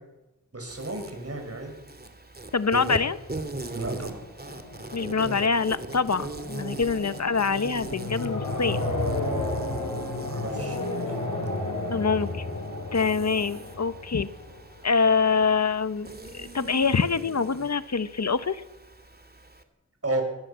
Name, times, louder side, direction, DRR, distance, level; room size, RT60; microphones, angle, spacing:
voice 1, 0.5-1.7 3.7-4.3 6.7-6.9 9.7-11.2 20.0-20.2, right 2 dB, 50° right, 4 dB, 7.0 m, -34 dB
Insect, 0.7-19.6, right 2 dB, 30° right, 2.6 m, -41 dB
voice 2, 2.5-3.2 4.9-8.8 11.9-12.5 12.9-14.3 14.8-16.1 16.3-18.6, left 5 dB, 60° left, 13 dB, 1.1 m, -25 dB
sound 1, 3.9-14.8, left 2 dB, 75° left, 5.2 m, -33 dB
20.5 x 17.0 x 7.6 m, 1.0 s
cardioid pair, 40°, 31 cm